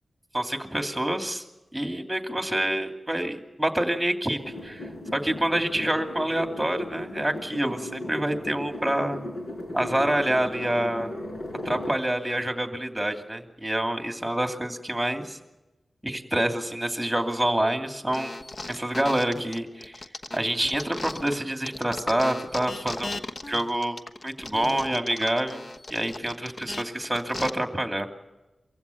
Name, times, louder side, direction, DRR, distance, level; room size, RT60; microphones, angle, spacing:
voice 1, 0.3-1.4 1.7-9.2 9.7-11.1 11.6-15.4 16.0-18.3 18.7-20.0 20.3-24.0 24.2-25.6 25.9-28.1, right 1 dB, 5° right, 6 dB, 2.7 m, -27 dB
sound 1, 4.4-12.0, left 1 dB, 90° left, 5.7 m, -36 dB
sound 2, 18.1-21.4 21.7-27.5, left 2 dB, 45° left, 1.1 m, -37 dB
24.0 x 15.5 x 9.4 m, 1.0 s
wide cardioid pair, 80°, 0 cm